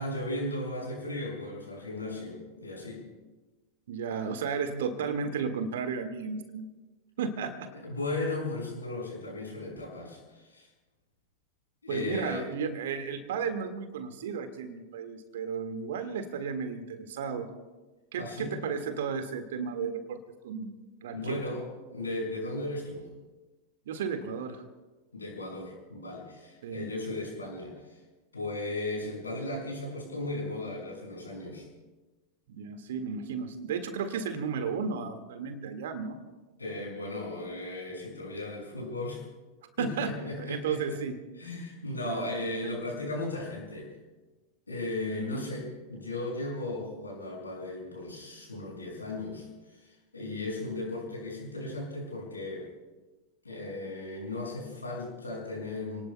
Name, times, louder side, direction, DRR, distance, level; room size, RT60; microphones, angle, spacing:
voice 1, 0.0-3.0 7.7-10.7 11.8-12.5 18.1-18.6 21.1-23.1 25.1-28.0 28.3-31.7 36.6-39.2 39.8-41.0 41.3-43.9 44.7-52.7 53.4-56.0, left 2 dB, 80° left, -1 dB, 6.2 m, -36 dB
voice 2, 3.9-6.7 7.2-7.7 11.9-17.5 18.1-20.2 20.4-21.4 23.9-24.7 26.6-26.9 32.5-36.2 39.8-41.2 42.0-42.8 45.1-45.4, right 6 dB, 60° right, 7 dB, 1.9 m, -34 dB
29.5 x 19.0 x 2.3 m, 1.2 s
figure-of-eight pair, 90°, 0 cm